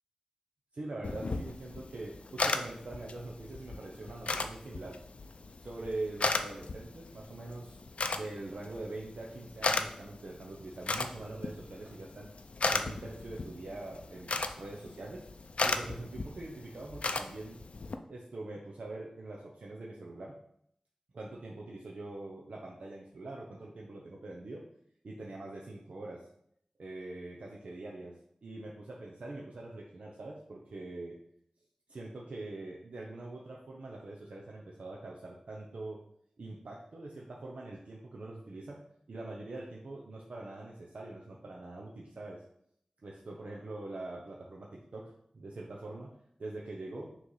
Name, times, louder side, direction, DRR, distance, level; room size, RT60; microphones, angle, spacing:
voice 1, 0.7-5.0 5.6-7.8 8.1-12.3 12.6-15.3 15.6-17.6 18.1-20.4 21.1-24.6 25.0-26.3 26.8-31.2 31.9-36.0 36.4-42.4 43.0-47.2, right 2 dB, 75° right, -3 dB, 0.8 m, -43 dB
sound 1, 1.0-18.0, left 3 dB, 65° left, 0.4 m, -36 dB
6.4 x 3.2 x 5.7 m, 0.72 s
wide cardioid pair, 85°, 2 cm